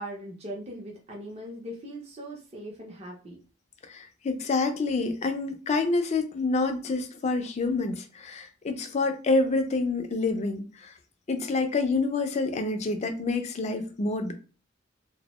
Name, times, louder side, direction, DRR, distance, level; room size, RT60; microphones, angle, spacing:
voice 1, 0.0-3.4, right 1 dB, 30° right, -2 dB, 0.5 m, -40 dB
voice 2, 3.9-10.9 11.3-14.3, left 3 dB, 35° left, 6 dB, 0.3 m, -27 dB
2.2 x 2.0 x 2.9 m, 0.36 s
head